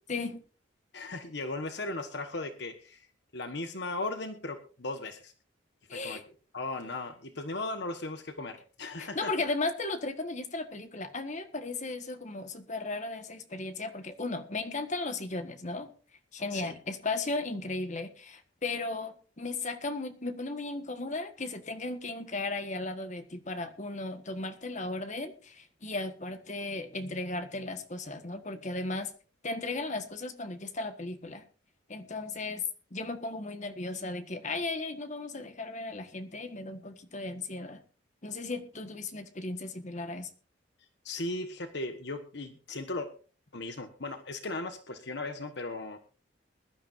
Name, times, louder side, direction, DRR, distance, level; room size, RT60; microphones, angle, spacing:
voice 1, 0.9-3.1 3.3-5.3 5.9-6.2 6.5-9.3 16.5-16.7 41.0-43.1 43.5-46.0, left 2 dB, 60° left, 8 dB, 1.3 m, -37 dB
voice 2, 5.9-6.2 9.0-15.9 16.3-29.1 29.4-31.4 31.9-32.6 32.9-37.8 38.2-40.3, left 2 dB, 40° left, 8 dB, 1.5 m, -36 dB
21.0 x 12.0 x 2.6 m, 0.37 s
head